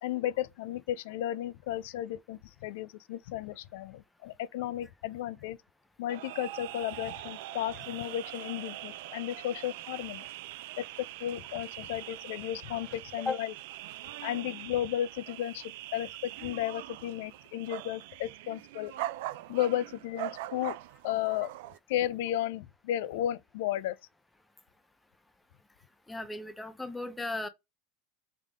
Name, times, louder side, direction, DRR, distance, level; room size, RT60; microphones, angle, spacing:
voice 1, 0.0-5.6 6.0-10.2 10.8-13.5 14.2-18.9 19.5-20.8 21.0-21.5 21.9-24.0, left 12 dB, 75° left, 0.4 m, -34 dB
sound 1, 6.1-21.8, right 15 dB, 70° right, 0.4 m, -42 dB
voice 2, 26.1-27.5, left 2 dB, 5° left, 0.6 m, -35 dB
3.7 x 3.5 x 3.5 m
supercardioid pair, 145°, 0 cm